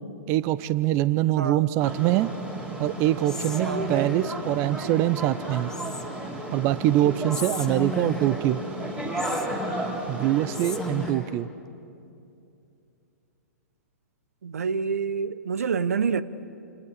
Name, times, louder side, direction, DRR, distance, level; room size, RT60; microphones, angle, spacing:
voice 1, 0.3-2.3 2.8-5.7 6.5-8.6 10.1-11.5, right 14 dB, 30° right, 0.6 m, -24 dB
voice 2, 1.4-1.7 3.6-3.9 14.4-16.2, right 6 dB, 65° right, 0.9 m, -27 dB
sound 1, 1.8-11.1, right 2 dB, 10° right, 3.7 m, -33 dB
Whispering, 3.2-4.3 5.7-6.4 7.3-8.5 9.2-10.1 10.5-11.4, left 3 dB, 5° left, 1.1 m, -36 dB
29.0 x 27.5 x 6.7 m
figure-of-eight pair, 115°, 9 cm